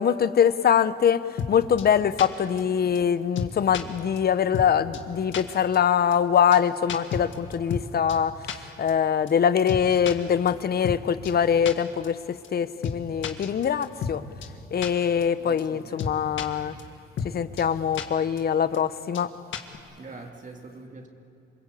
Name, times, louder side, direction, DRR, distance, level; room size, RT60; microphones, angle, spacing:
voice 1, 0.0-14.2 14.7-16.7 17.2-19.3, left 8 dB, 50° left, 13 dB, 1.0 m, -23 dB
sound 1, 1.4-1.5 1.8-1.9 2.2-2.3 2.6-2.7 2.9-3.0 3.4-3.8 4.2-4.3 4.5-4.7 4.9-5.0 5.3-5.4 5.7-5.8 6.1-6.2 6.5-6.6 6.9-7.8 8.1-8.2 8.5-8.6 8.9-9.0 9.3-9.4 9.7-10.1 10.5-10.6 10.8-11.0 11.2-11.3 11.7-11.8 12.0-12.1 12.4-12.5 12.8-13.0 13.2-14.1 14.4-14.5 14.8-14.9 15.2-15.3 15.6-15.7 16.0-16.5 16.8-16.9 17.2-17.3 17.6-17.7 17.9-18.0 18.4-18.5 18.7-18.8 19.1-19.2 19.5-19.8, left 7 dB, 75° left, 1.9 m, -31 dB
voice 2, 15.4-16.0 20.0-21.1, right 3 dB, 40° right, 2 dB, 2.8 m, -43 dB
27.5 x 21.0 x 8.5 m, 2.8 s
cardioid pair, 90°, 20 cm